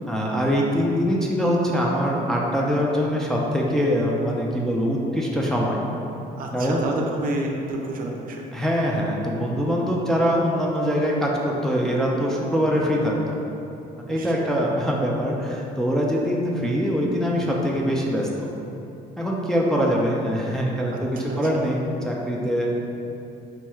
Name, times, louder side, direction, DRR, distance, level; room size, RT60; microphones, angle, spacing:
voice 1, 0.1-5.8 6.5-6.9 8.5-13.4 14.1-18.5 19.2-22.8, equal, 5° left, -3 dB, 0.4 m, -23 dB
voice 2, 6.3-8.4 14.1-14.4 20.9-21.7, right 2 dB, 55° right, 0 dB, 0.5 m, -30 dB
4.4 x 3.0 x 2.3 m, 2.8 s
cardioid pair, 110°, 17 cm